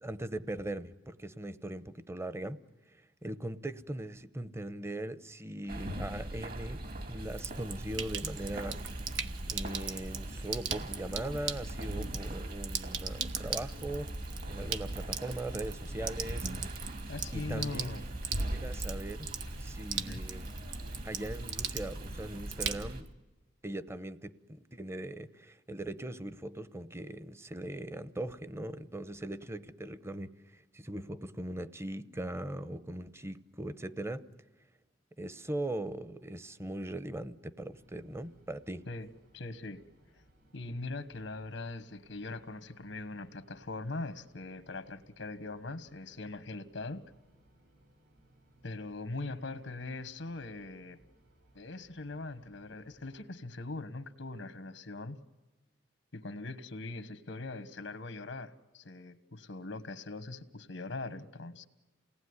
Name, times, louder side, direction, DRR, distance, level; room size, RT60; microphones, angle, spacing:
voice 1, 0.0-2.6 3.2-8.8 9.5-16.5 17.3-17.9 18.5-19.3 19.6-20.5 21.0-23.1 23.6-34.3 35.2-38.8, right 1 dB, 15° right, 14 dB, 0.8 m, -40 dB
sound 1, 5.7-23.0, right 1 dB, 50° right, 2.1 m, -40 dB
Sink (filling or washing), 7.2-23.1, right 8 dB, 80° right, 1.3 m, -41 dB
voice 2, 17.1-18.0 19.9-20.2 38.9-39.1 39.3-39.8 40.1-40.2 40.5-47.0 48.6-51.0 51.5-55.2 56.1-61.7, left 2 dB, 85° left, 11 dB, 1.4 m, -41 dB
sound 2, 37.7-53.2, right 1 dB, 65° right, 7.1 m, -65 dB
29.0 x 19.0 x 9.7 m, 1.2 s
head